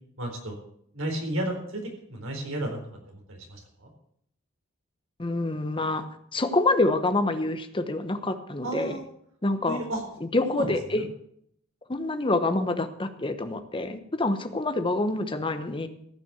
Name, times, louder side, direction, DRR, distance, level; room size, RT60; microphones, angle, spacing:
voice 1, 0.2-0.6 0.9-1.8 2.1-2.8 3.1-3.9 8.6-9.0 9.6-10.1 10.5-10.7 10.9-11.0, right 1 dB, 80° right, 1 dB, 4.1 m, -32 dB
voice 2, 5.2-6.0 6.3-9.0 9.4-9.8 10.3-11.0 11.9-15.9, left 2 dB, 25° left, 9 dB, 1.0 m, -26 dB
15.0 x 5.9 x 8.0 m, 0.68 s
head